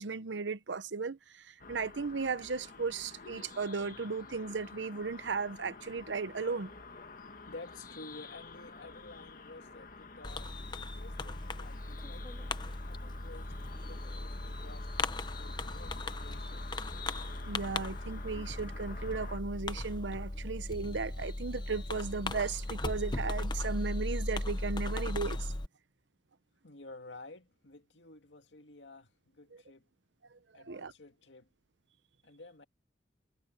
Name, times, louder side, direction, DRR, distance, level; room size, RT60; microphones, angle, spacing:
voice 1, 0.0-6.7 17.5-25.5 29.5-29.6 30.6-30.9, right 4 dB, 90° right, 0.9 m, -36 dB
sound 1, 1.6-19.4, left 4 dB, 50° left, 1.6 m, -50 dB
voice 2, 7.4-10.5 10.9-13.5 13.8-16.6 26.6-29.9 30.5-31.5 32.2-32.6, left 2 dB, 85° left, 2.2 m, -52 dB
Fireworks, 10.2-25.7, left 2 dB, 25° left, 1.0 m, -37 dB
head